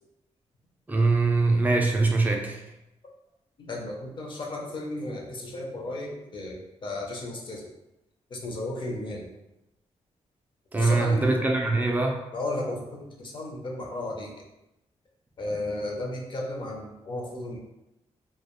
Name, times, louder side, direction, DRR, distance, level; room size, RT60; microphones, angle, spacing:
voice 1, 0.9-2.6 10.7-12.2, right 3 dB, 15° right, 1 dB, 0.3 m, -23 dB
voice 2, 3.6-7.7 8.3-9.3 10.7-11.5 12.3-14.3 15.4-17.6, left 1 dB, 45° left, -1 dB, 0.5 m, -34 dB
2.2 x 2.1 x 2.9 m, 0.91 s
wide cardioid pair, 150°, 12 cm